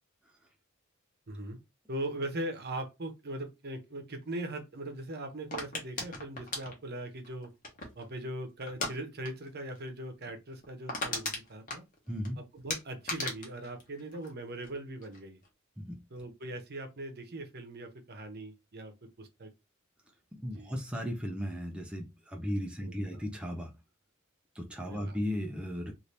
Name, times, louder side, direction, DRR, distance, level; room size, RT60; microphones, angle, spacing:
voice 1, 1.3-1.6 1.9-7.5 7.9-11.8 12.4-15.4 16.1-19.5 20.5-20.8 22.8-23.3 24.8-25.2, right 1 dB, 50° right, 0.8 m, -40 dB
sound 1, 5.5-8.1 8.7-8.9 9.2-9.5 9.7-9.8 10.3-10.4 10.6-12.3 12.7-14.7 15.0-15.5, left 3 dB, 40° left, 1.0 m, -37 dB
voice 2, 12.1-12.4 15.8-15.9 20.4-23.7 24.6-25.9, equal, 5° right, 0.4 m, -36 dB
2.7 x 2.6 x 3.2 m
head